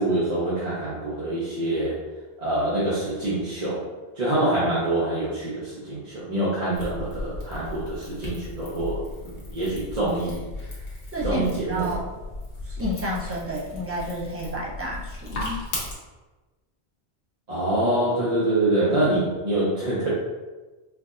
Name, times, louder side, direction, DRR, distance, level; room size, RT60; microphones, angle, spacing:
voice 1, 0.0-2.0 2.4-3.8 4.2-10.4 11.2-12.0 17.5-20.1, right 1 dB, 40° right, -10 dB, 0.9 m, -25 dB
sound 1, 6.7-15.9, left 2 dB, 85° left, 1.3 m, -36 dB
voice 2, 11.1-12.0 12.6-15.6, equal, 15° right, -5 dB, 0.5 m, -31 dB
4.5 x 2.6 x 2.5 m, 1.2 s
omnidirectional pair, 1.1 m